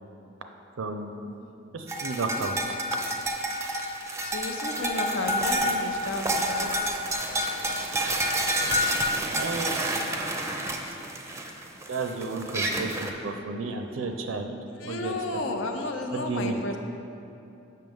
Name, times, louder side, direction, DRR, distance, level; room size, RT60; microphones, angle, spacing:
voice 1, 0.8-1.1 1.7-2.7 9.2-9.8 11.9-15.1 16.1-16.6, right 3 dB, 75° right, 5 dB, 0.5 m, -32 dB
sound 1, 1.9-13.1, equal, 15° right, 0.5 m, -29 dB
voice 2, 4.2-6.9 14.7-16.8, left 2 dB, 70° left, 4 dB, 0.6 m, -33 dB
7.6 x 5.7 x 3.6 m, 2.8 s
head